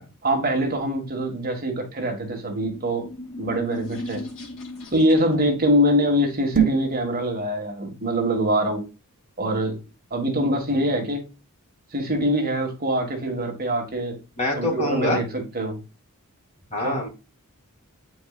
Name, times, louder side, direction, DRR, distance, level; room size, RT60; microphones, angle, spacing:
voice 1, 0.2-3.1 3.4-4.2 4.9-8.9 9.4-9.8 10.1-11.3 11.9-14.2 14.6-15.8 16.8-17.0, equal, 40° right, 1.8 m, -24 dB
sound 1, 2.7-5.5, left 1 dB, 60° left, 2.3 m, -37 dB
sound 2, 6.4-7.0, right 9 dB, 60° right, 1.1 m, -22 dB
voice 2, 14.4-15.2 16.7-17.1, left 1 dB, 30° left, 3.1 m, -24 dB
9.0 x 4.7 x 2.4 m
head